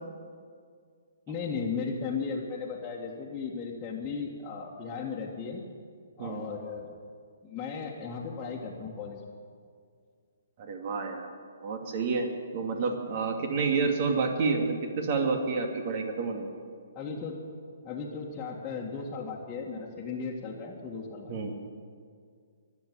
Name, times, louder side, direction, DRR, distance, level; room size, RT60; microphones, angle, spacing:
voice 1, 1.3-5.6 6.2-6.9 7.4-9.2 17.0-17.4 17.8-21.3, left 5 dB, 20° left, -6 dB, 1.9 m, -36 dB
voice 2, 10.6-11.3 11.6-12.3 12.5-16.5 21.3-21.5, right 4 dB, 45° right, 4 dB, 2.5 m, -29 dB
23.0 x 8.0 x 7.8 m, 2.1 s
figure-of-eight pair, 130°, 0 cm